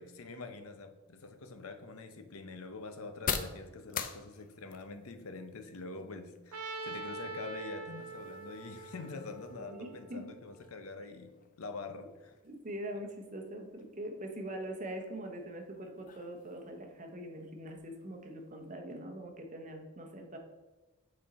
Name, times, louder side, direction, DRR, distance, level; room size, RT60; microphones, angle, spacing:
voice 1, 0.0-12.3, left 3 dB, 80° left, 8 dB, 0.7 m, -45 dB
sound 1, 1.1-18.7, left 7 dB, 40° left, 0.4 m, -47 dB
Trumpet, 6.5-10.6, right 3 dB, 90° right, 0.7 m, -44 dB
voice 2, 9.6-10.3 12.4-20.4, right 1 dB, 35° right, 4 dB, 0.9 m, -43 dB
6.3 x 4.3 x 4.2 m, 1.2 s
head